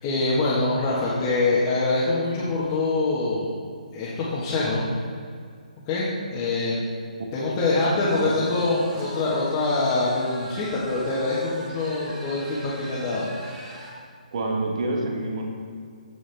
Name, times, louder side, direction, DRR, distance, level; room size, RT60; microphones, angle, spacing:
voice 1, 0.0-3.5 3.9-4.8 5.9-6.9 7.3-13.3, left 2 dB, 25° left, -9 dB, 1.4 m, -24 dB
voice 2, 7.5-8.4 14.3-15.5, right 2 dB, 45° right, 1 dB, 1.4 m, -28 dB
sound 1, 8.1-14.0, equal, 20° right, 1.5 m, -42 dB
15.0 x 5.0 x 3.4 m, 2.1 s
hypercardioid pair, 160°, 4 cm